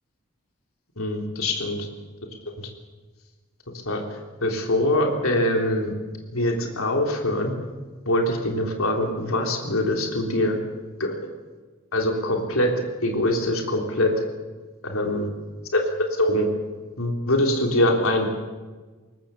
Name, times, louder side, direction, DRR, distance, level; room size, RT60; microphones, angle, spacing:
voice 1, 1.0-1.9 2.4-2.7 3.8-4.0 4.4-5.9 6.3-7.5 8.0-10.6 11.0-11.3 11.9-12.7 13.0-14.1 14.8-15.3 15.7-15.8 16.2-16.5 17.0-18.3, left 1 dB, 75° left, 2 dB, 3.5 m, -23 dB
22.5 x 19.0 x 7.2 m, 1.3 s
head